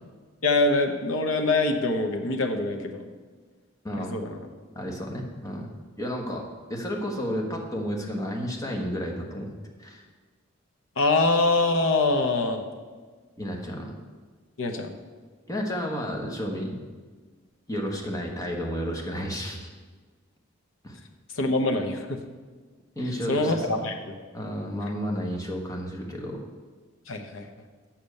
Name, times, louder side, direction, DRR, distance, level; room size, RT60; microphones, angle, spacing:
voice 1, 0.4-3.0 3.9-4.4 11.0-12.6 14.6-14.9 21.3-22.2 23.3-24.1 27.1-27.7, left 2 dB, 70° left, 5 dB, 0.9 m, -24 dB
voice 2, 3.8-4.2 4.7-5.7 6.0-6.4 6.7-9.5 9.8-10.0 13.4-13.9 15.5-16.8 17.7-19.7 20.8-21.0 22.9-23.8 24.3-26.4, equal, 15° left, 0 dB, 1.1 m, -31 dB
7.1 x 5.9 x 6.5 m, 1.5 s
head